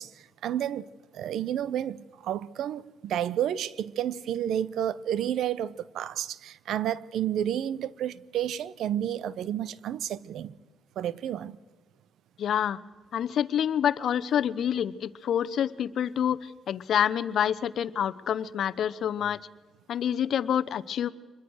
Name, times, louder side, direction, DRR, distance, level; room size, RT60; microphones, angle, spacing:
voice 1, 0.0-10.6 11.0-11.6, right 10 dB, 75° right, 0.8 m, -31 dB
voice 2, 12.4-12.8 13.1-19.4 19.9-21.1, left 9 dB, 65° left, 0.9 m, -27 dB
25.5 x 21.5 x 6.4 m
cardioid pair, 90°, 0 cm